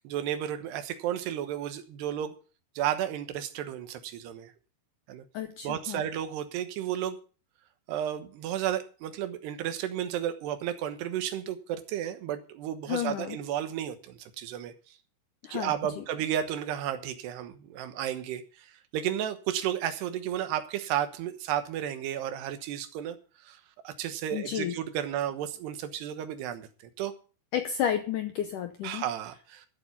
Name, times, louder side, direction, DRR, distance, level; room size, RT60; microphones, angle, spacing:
voice 1, 0.0-2.3 2.8-4.5 5.1-5.2 5.6-7.2 7.9-14.7 15.5-23.2 23.5-26.7 27.0-27.1 28.8-29.7, right 10 dB, 80° right, 3.2 m, -33 dB
voice 2, 5.3-6.0 12.9-13.4 15.4-16.0 24.3-24.8 27.5-29.1, left 9 dB, 80° left, 1.9 m, -32 dB
14.0 x 7.9 x 7.1 m
omnidirectional pair, 4.8 m